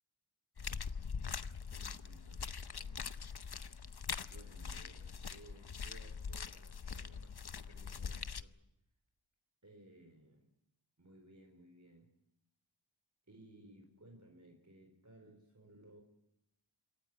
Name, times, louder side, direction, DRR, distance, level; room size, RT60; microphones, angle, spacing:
sound 1, 0.6-8.4, left 6 dB, 55° left, 0.8 m, -43 dB
voice 1, 1.7-3.3 4.3-8.5 9.6-10.5 11.0-12.1 13.3-16.0, right 1 dB, 35° right, 3 dB, 4.0 m, -60 dB
27.0 x 13.5 x 9.2 m, 0.85 s
wide cardioid pair, 50°, 46 cm